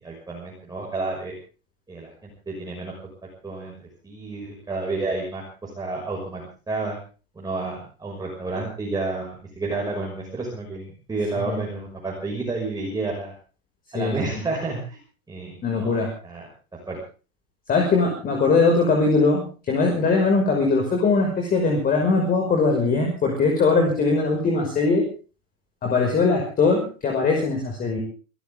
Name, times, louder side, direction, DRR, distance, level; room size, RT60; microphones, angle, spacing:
voice 1, 0.0-1.3 1.9-2.9 3.4-3.7 4.0-7.0 7.4-13.3 13.9-15.0 15.3-16.5 16.9-17.0, right 3 dB, 10° right, -2 dB, 6.0 m, -30 dB
voice 2, 13.9-14.4 15.6-16.1 17.7-25.0 25.8-28.0, left 3 dB, 20° left, 1 dB, 5.9 m, -21 dB
26.5 x 14.5 x 3.7 m, 0.37 s
hypercardioid pair, 135°, 42 cm